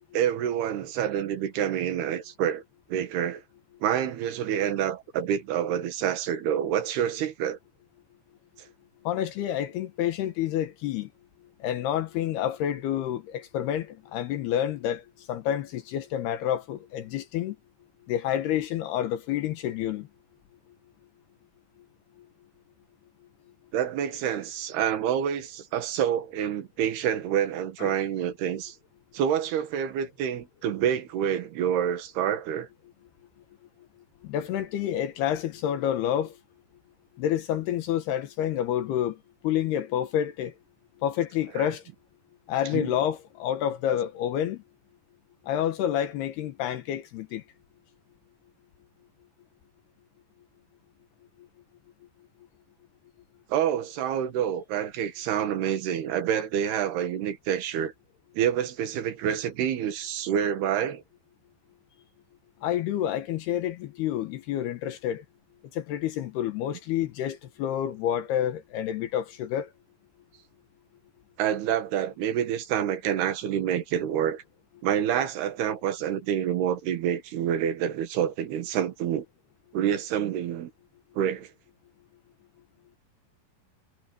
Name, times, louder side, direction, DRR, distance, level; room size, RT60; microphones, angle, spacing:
voice 1, 0.1-2.6 2.9-3.4 3.8-7.6 23.7-28.8 29.1-32.7 41.6-41.7 42.7-42.9 53.5-57.9 58.4-61.0 71.4-74.4 74.8-79.3 79.7-80.7 81.2-81.5, right 9 dB, 70° right, 3.6 m, -27 dB
voice 2, 9.0-11.1 11.6-17.6 18.1-20.1 27.8-28.0 34.2-36.3 37.2-39.2 39.4-40.5 41.0-41.8 42.5-44.6 45.5-47.4 62.6-65.2 65.7-69.7, left 10 dB, 75° left, 3.2 m, -28 dB
omnidirectional pair, 4.8 m